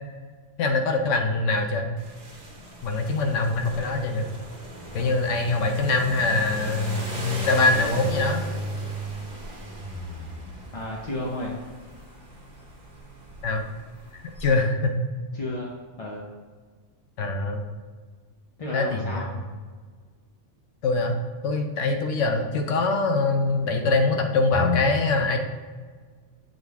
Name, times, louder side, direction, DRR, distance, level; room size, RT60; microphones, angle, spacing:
voice 1, 0.6-1.9 2.8-4.3 4.9-8.4 13.4-13.7 14.4-15.0 17.2-17.6 18.7-19.3 20.8-21.2 21.4-25.4, left 3 dB, 80° left, 4 dB, 1.0 m, -23 dB
sound 1, 2.0-14.5, right 2 dB, 40° right, 1.0 m, -37 dB
voice 2, 10.7-11.5 15.3-15.7 16.0-16.3 18.6-19.3, left 1 dB, 40° left, -3 dB, 0.6 m, -32 dB
7.2 x 3.8 x 3.5 m, 1.5 s
omnidirectional pair, 1.3 m